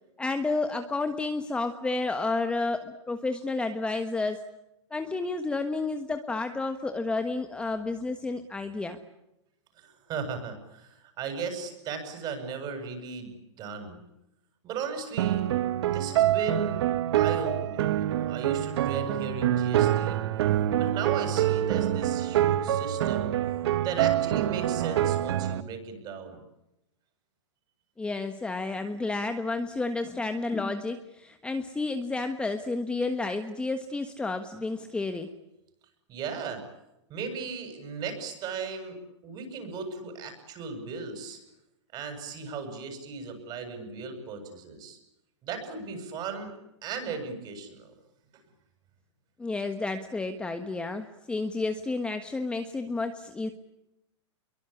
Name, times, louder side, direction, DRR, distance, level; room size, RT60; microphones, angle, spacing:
voice 1, 0.2-4.4 4.9-9.0 28.0-35.3 49.4-53.5, left 3 dB, 5° left, 7 dB, 1.3 m, -31 dB
voice 2, 9.8-14.0 14.6-15.5 15.8-16.8 17.2-20.2 20.8-23.3 23.8-26.4 36.1-36.6 37.1-39.0 39.2-41.4 41.9-45.0 45.4-46.5 46.8-47.9, right 5 dB, 25° right, 7 dB, 7.7 m, -36 dB
sound 1, 15.2-25.6, right 12 dB, 60° right, 1.5 m, -26 dB
28.0 x 23.5 x 8.6 m, 0.89 s
hypercardioid pair, 150°, 15 cm